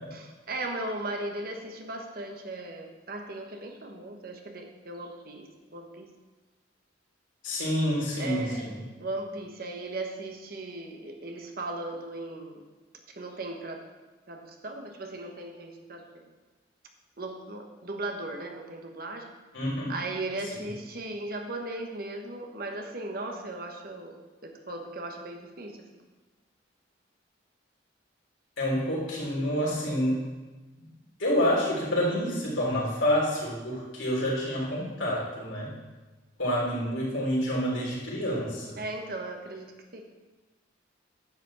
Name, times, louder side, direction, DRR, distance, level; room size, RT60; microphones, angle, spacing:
voice 1, 0.1-6.1 8.2-8.7 9.0-12.6 13.1-13.9 14.3-16.3 17.2-19.3 19.9-24.2 24.4-25.9 38.8-40.0, right 2 dB, 50° right, 3 dB, 1.1 m, -37 dB
voice 2, 7.4-8.8 19.5-19.9 28.6-30.2 30.8-30.9 31.2-35.7 36.4-38.8, equal, 75° left, -5 dB, 3.7 m, -28 dB
10.0 x 5.0 x 7.3 m, 1.2 s
head